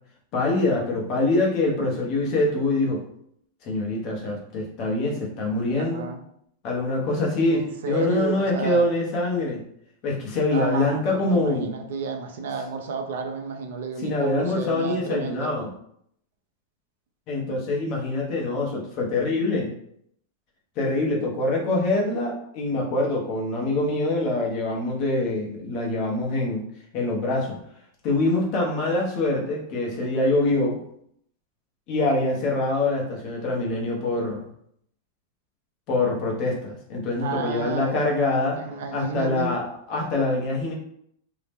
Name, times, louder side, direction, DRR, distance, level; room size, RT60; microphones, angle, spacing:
voice 1, 0.3-3.0 3.6-6.1 6.6-9.6 10.0-11.7 14.0-15.7 17.3-19.7 20.8-26.6 26.9-27.6 28.0-30.8 31.9-34.5 35.9-38.6 38.9-40.7, left 2 dB, 30° left, -2 dB, 0.7 m, -24 dB
voice 2, 5.8-6.2 7.5-8.8 10.5-15.5 37.2-39.5, right 4 dB, 70° right, 5 dB, 0.5 m, -31 dB
2.7 x 2.0 x 3.4 m, 0.70 s
supercardioid pair, 175°, 0 cm